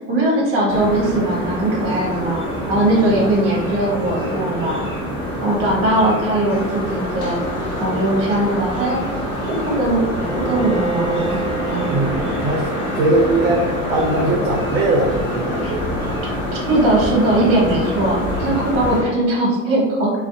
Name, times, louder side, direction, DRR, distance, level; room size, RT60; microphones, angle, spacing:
voice 1, 0.0-2.4 2.7-4.9 5.4-7.4 7.7-9.0 9.4-10.0 10.4-11.4 11.7-11.9 15.6-15.7 16.5-20.1, right 1 dB, 35° right, -3 dB, 1.0 m, -19 dB
sound 1, 0.7-19.0, equal, 15° left, 0.9 m, -26 dB
sound 2, 6.5-19.1, left 2 dB, 55° left, 0.6 m, -34 dB
Bowed string instrument, 10.2-16.2, right 2 dB, 40° left, 1.4 m, -31 dB
voice 2, 11.9-12.7 12.9-15.9, right 2 dB, 50° right, -3 dB, 0.6 m, -20 dB
2.5 x 2.0 x 2.6 m, 1.2 s
hypercardioid pair, 100°, 41 cm